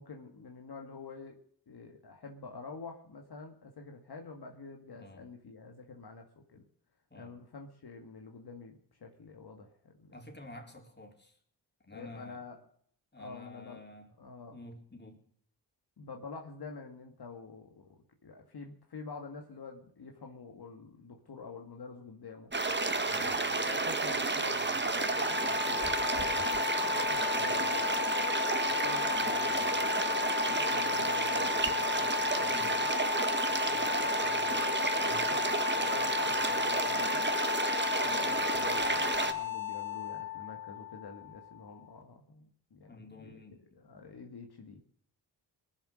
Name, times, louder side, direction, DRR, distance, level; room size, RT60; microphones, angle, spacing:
voice 1, 0.0-1.4 1.7-6.7 7.2-10.2 11.9-12.6 13.2-13.8 14.2-14.6 16.0-22.5 23.1-28.0 28.7-32.9 33.4-37.2 38.0-43.4 43.8-44.8, left 4 dB, 60° left, 2 dB, 2.1 m, -47 dB
voice 2, 10.1-11.4 11.8-12.4 13.1-14.1 14.5-15.2 23.0-23.4 27.3-27.6 32.5-32.8 35.0-35.2 42.9-43.6, left 2 dB, 25° left, 2 dB, 4.2 m, -50 dB
sound 1, 22.5-39.3, right 3 dB, 25° right, 1.6 m, -31 dB
sound 2, 25.0-41.9, left 13 dB, 5° left, 3.3 m, -35 dB
20.5 x 7.4 x 6.4 m, 0.62 s
cardioid pair, 50°, 42 cm